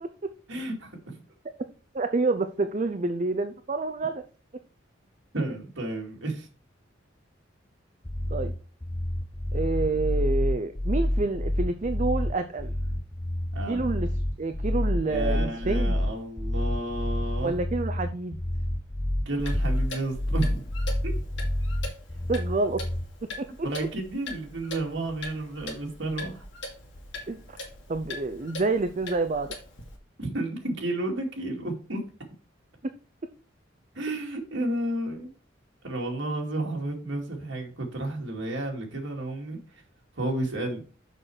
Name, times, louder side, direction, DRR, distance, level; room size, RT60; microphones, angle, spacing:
voice 1, 0.5-0.9 5.3-6.5 13.5-13.8 15.0-17.5 19.3-20.7 21.0-21.1 23.6-26.4 30.2-32.0 33.9-35.3 35.8-39.6 40.2-40.8, right 1 dB, 75° right, 0 dB, 2.4 m, -31 dB
voice 2, 1.9-4.2 8.3-8.5 9.5-12.7 13.7-14.1 14.4-16.0 17.4-18.4 22.3-22.8 23.4-23.7 27.3-27.6 27.9-29.6, right 3 dB, 35° right, 9 dB, 0.5 m, -28 dB
sound 1, 8.1-23.1, left 1 dB, 15° left, 0.5 m, -28 dB
Clock, 19.4-30.0, left 2 dB, 65° left, 2.1 m, -42 dB
6.7 x 5.8 x 4.8 m, 0.38 s
head